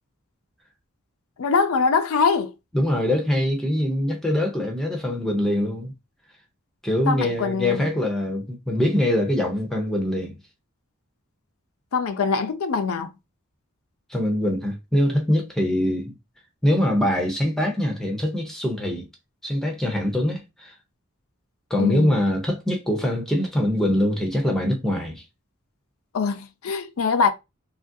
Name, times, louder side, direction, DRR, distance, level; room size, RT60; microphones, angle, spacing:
voice 1, 1.4-2.5 7.1-7.9 11.9-13.1 21.8-22.2 26.1-27.3, left 5 dB, 90° left, 0.5 m, -23 dB
voice 2, 2.7-5.9 6.8-10.4 14.1-16.2 16.6-19.1 19.4-20.7 21.7-25.2, left 1 dB, ahead, 0.5 m, -23 dB
2.9 x 2.5 x 2.5 m
head